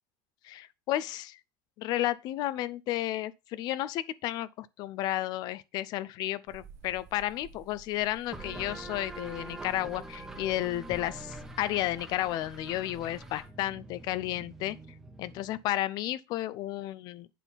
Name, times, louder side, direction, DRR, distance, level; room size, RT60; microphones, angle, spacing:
voice 1, 0.4-1.4 1.8-14.8 15.2-17.3, left 14 dB, 45° left, 0.5 m, -32 dB
sound 1, 6.5-13.5, right 6 dB, 35° right, 1.3 m, -54 dB
sound 2, 8.3-15.7, right 2 dB, 5° right, 1.1 m, -45 dB
8.4 x 3.7 x 5.7 m
cardioid pair, 160°, 9 cm